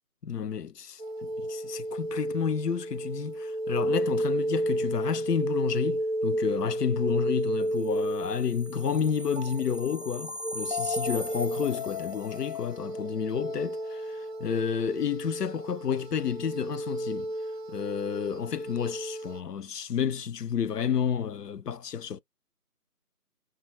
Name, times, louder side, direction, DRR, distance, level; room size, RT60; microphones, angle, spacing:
voice 1, 0.2-17.3 17.7-22.2, left 7 dB, 90° left, 0.5 m, -30 dB
sound 1, 1.0-19.4, right 1 dB, 45° right, 0.4 m, -32 dB
2.7 x 2.3 x 2.5 m
figure-of-eight pair, 165°, 46 cm